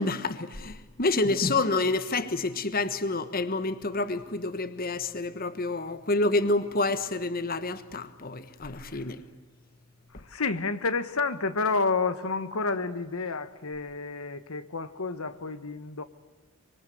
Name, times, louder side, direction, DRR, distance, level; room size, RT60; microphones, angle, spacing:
voice 1, 0.0-9.2, left 2 dB, 45° left, 1.4 m, -28 dB
voice 2, 8.7-9.1 10.1-16.0, left 4 dB, 85° left, 1.3 m, -30 dB
25.0 x 24.0 x 7.9 m
head